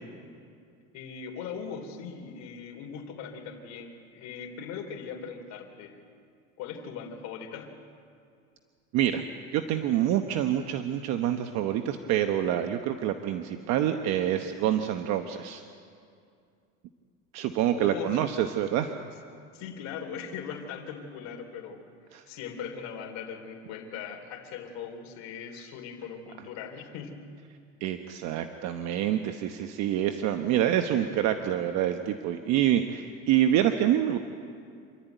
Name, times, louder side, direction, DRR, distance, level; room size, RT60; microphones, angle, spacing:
voice 1, 0.9-6.0 6.6-7.7 17.7-18.2 19.5-21.8 22.3-27.2 31.1-31.2, left 7 dB, 60° left, 4 dB, 3.2 m, -39 dB
voice 2, 9.5-15.6 17.3-18.9 22.1-22.2 27.8-34.2, right 11 dB, 60° right, 7 dB, 1.1 m, -26 dB
27.0 x 12.5 x 9.2 m, 2.4 s
supercardioid pair, 120°, 31 cm